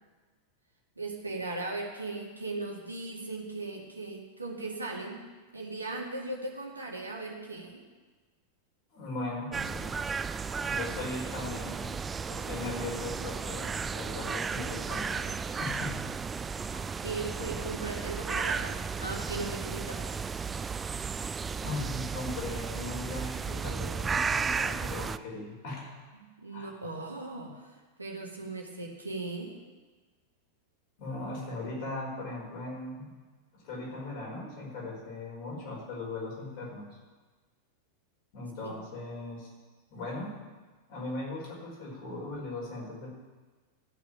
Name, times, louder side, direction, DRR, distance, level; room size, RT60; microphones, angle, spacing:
voice 1, 1.0-5.2 5.5-7.8 17.0-20.1 26.4-29.5 38.6-38.7, right 2 dB, 80° right, 0 dB, 2.1 m, -38 dB
voice 2, 8.9-10.0 10.6-12.0 12.3-16.1 16.7-16.9 21.6-26.0 26.5-26.8 31.0-33.1 33.5-36.9 38.3-39.5 39.9-40.5 40.9-43.2, left 2 dB, 50° left, -3 dB, 5.2 m, -38 dB
sound 1, 9.5-25.2, right 5 dB, 15° right, 0.4 m, -34 dB
14.0 x 6.3 x 8.9 m, 1.3 s
figure-of-eight pair, 90°, 0 cm